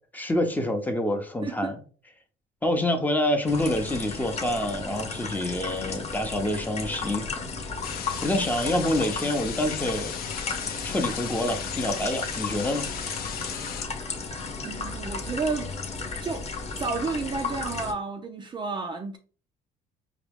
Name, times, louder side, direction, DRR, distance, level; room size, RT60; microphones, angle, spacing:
voice 1, 0.1-1.8 2.6-7.5 8.2-10.2 10.8-12.9, left 1 dB, 10° left, 0.7 m, -27 dB
voice 2, 1.4-1.7 14.6-15.7 16.2-16.4 16.8-19.2, right 4 dB, 25° right, 0.4 m, -31 dB
sound 1, 3.5-17.9, left 4 dB, 40° left, 1.0 m, -34 dB
sound 2, 7.8-13.8, left 8 dB, 65° left, 0.6 m, -36 dB
4.8 x 2.3 x 3.5 m
cardioid pair, 110°, 17 cm